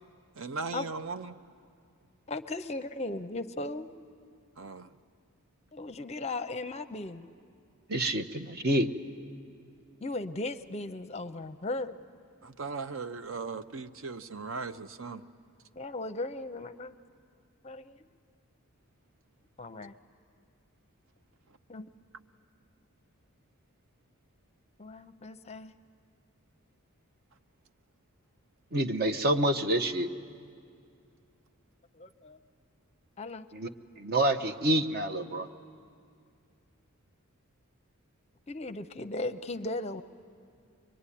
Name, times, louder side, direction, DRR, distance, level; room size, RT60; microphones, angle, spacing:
voice 1, 0.4-1.4 4.6-4.9 12.4-15.3, right 4 dB, 60° right, 0.6 m, -38 dB
voice 2, 2.3-3.9 5.7-7.3 10.0-12.0 15.8-16.9 17.6-18.1 19.6-19.9 21.7-21.9 24.8-25.7 31.9-32.4 33.2-33.5 38.5-40.0, left 2 dB, 30° left, 0.6 m, -37 dB
voice 3, 7.9-8.9 28.7-30.1 33.5-33.7 34.0-35.5, right 1 dB, 45° right, 1.0 m, -27 dB
24.0 x 23.5 x 10.0 m
head